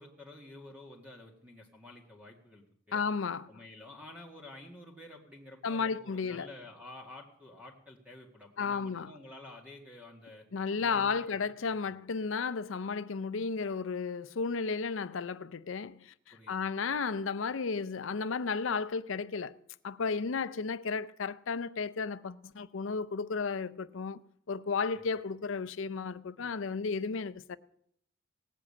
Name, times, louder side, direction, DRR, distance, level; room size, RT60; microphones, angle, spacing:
voice 1, 0.0-3.0 3.5-10.5 10.8-11.5 11.8-12.0 16.3-16.6 24.9-25.0, left 2 dB, 5° right, 1.9 m, -50 dB
voice 2, 2.9-3.5 5.6-6.5 8.6-9.1 10.5-19.6 19.8-24.2 24.5-27.6, left 5 dB, 70° left, 0.5 m, -33 dB
17.5 x 7.6 x 8.7 m
head